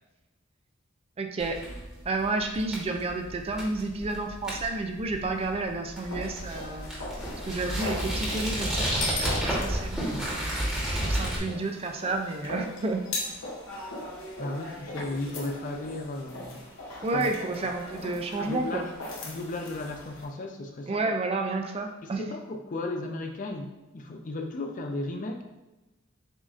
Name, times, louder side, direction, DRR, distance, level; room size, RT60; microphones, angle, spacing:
voice 1, 1.2-1.6 2.1-6.9 7.4-13.0 17.0-18.9 20.9-22.3, right 3 dB, 30° right, 4 dB, 0.4 m, -31 dB
sound 1, 1.4-11.4, equal, 5° right, 1.2 m, -32 dB
sound 2, 6.0-20.3, left 2 dB, 75° left, 0.9 m, -39 dB
voice 2, 14.4-16.6 17.1-17.3 18.3-18.8 19.2-21.1 22.2-25.4, left 2 dB, 40° left, 4 dB, 0.4 m, -35 dB
7.2 x 2.6 x 2.5 m, 1.1 s
head